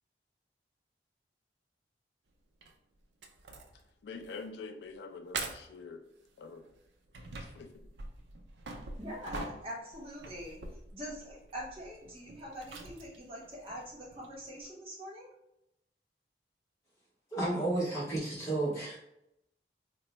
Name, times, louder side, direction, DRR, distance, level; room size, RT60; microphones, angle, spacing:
sound 1, 2.6-2.7 3.2-3.9 4.2-4.4 4.8-4.9 5.3-5.8 6.6-14.7, right 3 dB, 90° right, 0.5 m, -44 dB
voice 1, 3.7-6.0 6.4-6.7 7.4-7.9, left 4 dB, 75° left, 6 dB, 0.3 m, -46 dB
voice 2, 9.0-10.6 10.9-15.3, equal, 30° right, -5 dB, 1.1 m, -44 dB
voice 3, 17.3-19.0, right 2 dB, 15° left, -8 dB, 1.1 m, -32 dB
3.8 x 2.1 x 3.0 m, 0.82 s
head